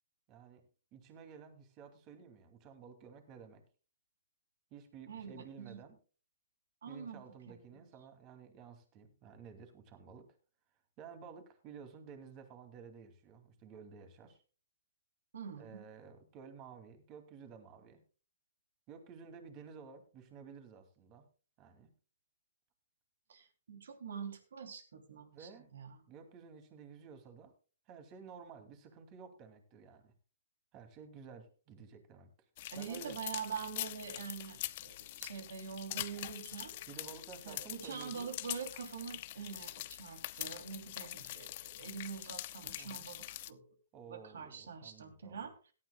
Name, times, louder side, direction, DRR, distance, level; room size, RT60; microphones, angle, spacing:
voice 1, 0.3-0.6 0.9-3.6 4.7-6.0 6.9-10.4 11.0-14.4 15.6-18.0 18.9-21.3 21.6-21.9 25.3-25.7 26.1-27.5 27.9-30.1 30.7-32.3 32.7-33.2 36.9-38.3 42.8-43.0 43.9-45.5, right 6 dB, 30° right, 7 dB, 2.6 m, -53 dB
voice 2, 5.1-5.8 6.8-7.2 7.5-7.6 15.3-15.8 23.3-26.0 32.7-36.8 37.4-43.6 44.1-45.7, right 6 dB, 70° right, 6 dB, 3.1 m, -45 dB
sound 1, 32.6-43.5, left 16 dB, 45° left, 0.6 m, -44 dB
17.0 x 12.0 x 2.3 m, 0.36 s
hypercardioid pair, 140°, 0 cm